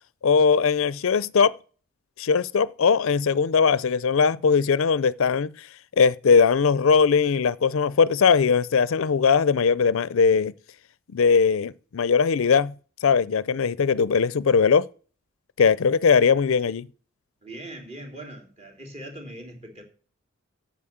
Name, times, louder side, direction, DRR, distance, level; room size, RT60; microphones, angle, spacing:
voice 1, 0.2-1.6 2.2-5.5 6.0-10.5 11.1-12.7 13.0-14.9 15.6-16.9, left 5 dB, 70° left, 0.5 m, -20 dB
voice 2, 17.4-19.8, right 1 dB, 30° right, 3.2 m, -40 dB
8.6 x 7.2 x 7.3 m
head